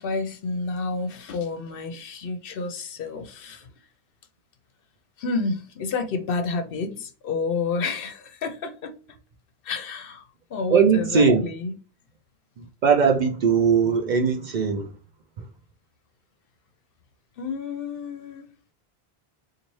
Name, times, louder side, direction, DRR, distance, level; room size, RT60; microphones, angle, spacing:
voice 1, 0.0-3.7 5.2-9.2 9.6-11.7 17.4-18.5, left 4 dB, 65° left, 0.7 m, -30 dB
voice 2, 10.7-11.4 12.6-14.9 15.4-15.5, right 6 dB, 55° right, 0.6 m, -20 dB
4.0 x 2.5 x 3.1 m
omnidirectional pair, 1.1 m